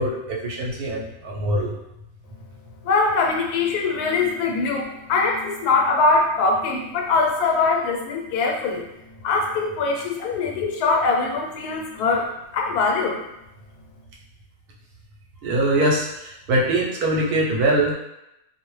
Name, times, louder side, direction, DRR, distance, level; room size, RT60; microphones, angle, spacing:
voice 1, 0.0-1.7 15.4-17.9, right 1 dB, 80° right, -2 dB, 1.1 m, -22 dB
voice 2, 2.8-8.9 9.2-13.2, left 3 dB, 85° left, 0 dB, 1.1 m, -22 dB
2.5 x 2.0 x 3.0 m, 0.87 s
omnidirectional pair, 1.6 m